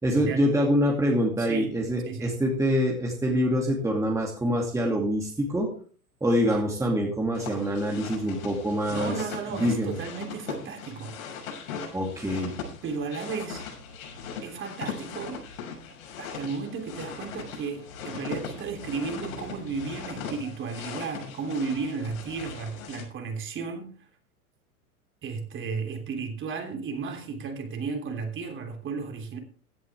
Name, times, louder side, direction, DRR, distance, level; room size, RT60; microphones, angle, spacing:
voice 1, 0.0-5.7 6.2-9.1 9.5-9.9 11.9-12.6, equal, 5° right, 2.6 m, -25 dB
voice 2, 2.0-2.3 8.9-11.2 12.8-13.7 14.4-15.4 16.2-23.9 25.2-29.4, right 5 dB, 25° right, 3.3 m, -34 dB
sound 1, 7.3-23.0, left 6 dB, 60° left, 6.6 m, -39 dB
16.5 x 10.5 x 3.6 m
hypercardioid pair, 110°, 44 cm